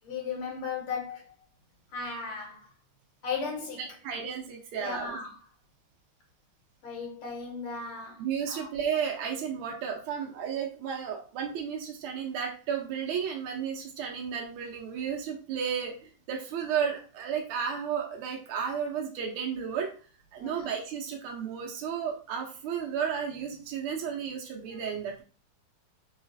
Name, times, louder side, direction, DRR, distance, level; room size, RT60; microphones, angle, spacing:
voice 1, 0.0-1.3 1.9-2.7 3.2-3.9 4.8-5.4 6.8-8.7 20.4-20.6, left 5 dB, 80° left, 1.8 m, -36 dB
voice 2, 4.0-5.2 8.2-19.9 20.3-25.2, right 7 dB, 80° right, 1.6 m, -33 dB
4.1 x 2.3 x 2.5 m
omnidirectional pair, 2.3 m